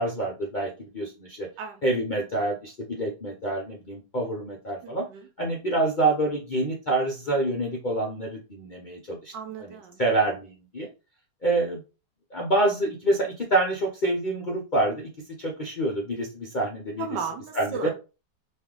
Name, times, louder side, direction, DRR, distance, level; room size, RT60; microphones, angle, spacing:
voice 1, 0.0-1.5 1.8-5.1 5.4-9.3 9.6-9.7 10.0-10.9 11.4-11.8 12.3-15.1 15.4-17.1 17.5-17.9, right 2 dB, 55° left, 0.5 m, -27 dB
voice 2, 4.8-5.3 9.3-10.0 17.0-17.9, right 6 dB, 90° right, 1.4 m, -35 dB
3.2 x 2.5 x 3.6 m
omnidirectional pair, 1.9 m